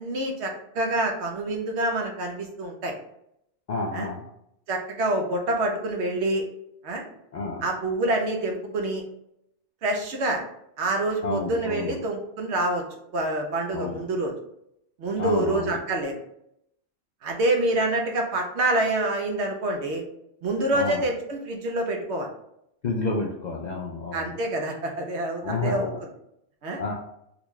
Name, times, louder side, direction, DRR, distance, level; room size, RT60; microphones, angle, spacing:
voice 1, 0.0-2.9 3.9-4.1 4.7-6.4 6.8-7.0 7.6-9.0 9.8-10.4 10.8-12.9 13.1-14.3 15.0-16.1 17.2-20.0 20.4-22.3 24.1-26.1 26.6-26.8, right 2 dB, 70° right, 2 dB, 1.0 m, -26 dB
voice 2, 3.7-4.2 7.3-7.6 11.2-12.0 13.7-14.0 15.2-15.7 20.7-21.0 22.8-24.3 25.4-26.0 26.8-26.9, left 3 dB, 60° left, -2 dB, 0.5 m, -29 dB
3.9 x 2.3 x 3.0 m, 0.76 s
omnidirectional pair, 1.2 m